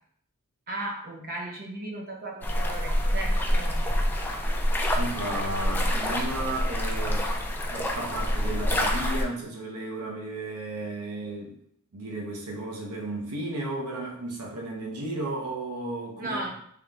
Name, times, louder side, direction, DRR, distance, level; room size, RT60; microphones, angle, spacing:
voice 1, 0.7-3.9 16.2-16.5, right 2 dB, 45° right, 1 dB, 0.8 m, -36 dB
sound 1, 2.4-9.2, equal, 10° left, 0.4 m, -26 dB
voice 2, 4.9-7.3 7.7-11.6 11.9-16.5, right 2 dB, 85° right, -1 dB, 0.9 m, -34 dB
3.5 x 3.0 x 3.7 m, 0.65 s
head